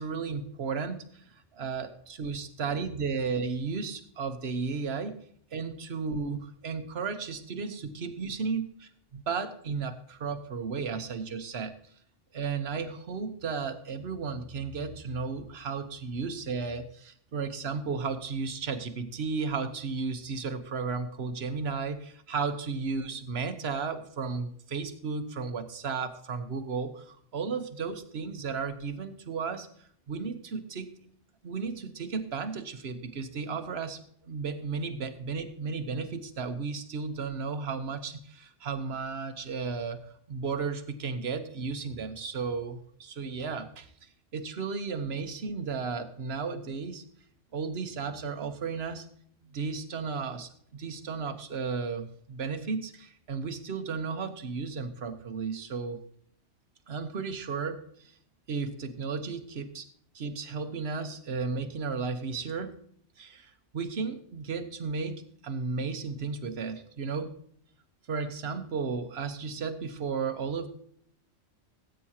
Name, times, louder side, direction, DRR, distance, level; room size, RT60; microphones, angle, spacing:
voice 1, 0.0-1.2 1.6-5.2 5.5-8.7 9.1-11.8 12.3-29.7 30.1-30.9 31.4-47.0 47.5-49.1 49.4-56.0 56.9-58.1 58.5-59.9 60.1-62.7 63.2-67.3 68.1-70.7, right 5 dB, 60° right, 8 dB, 1.3 m, -34 dB
18.0 x 9.1 x 2.9 m, 0.62 s
omnidirectional pair, 1.3 m